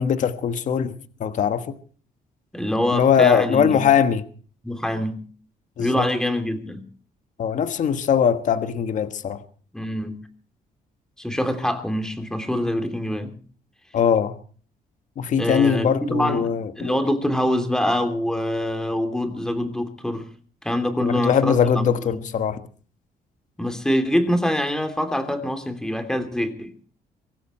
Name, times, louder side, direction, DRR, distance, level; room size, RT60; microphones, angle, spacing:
voice 1, 0.0-1.8 2.9-4.2 5.8-6.0 7.4-9.4 13.9-14.4 15.2-17.0 21.0-22.6, left 7 dB, 50° left, 1.4 m, -21 dB
voice 2, 2.5-3.9 4.6-5.2 5.8-6.8 9.7-10.2 11.2-13.3 15.4-16.5 16.8-20.3 20.6-22.2 23.6-26.7, left 1 dB, 5° left, 2.9 m, -25 dB
24.0 x 13.5 x 4.4 m
cardioid pair, 155°, 16 cm